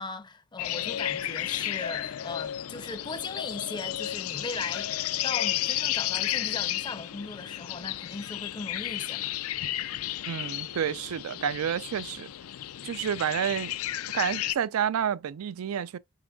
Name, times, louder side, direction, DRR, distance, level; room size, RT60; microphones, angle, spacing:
voice 1, 0.0-4.9 5.2-9.3, left 3 dB, 20° left, 0.5 m, -38 dB
sound 1, 0.6-14.6, left 13 dB, 80° left, 0.4 m, -33 dB
Gong, 0.9-14.6, left 5 dB, 65° left, 0.8 m, -57 dB
voice 2, 10.3-12.3 12.8-13.8 14.1-16.0, right 8 dB, 85° right, 0.4 m, -29 dB
5.1 x 4.7 x 2.2 m
head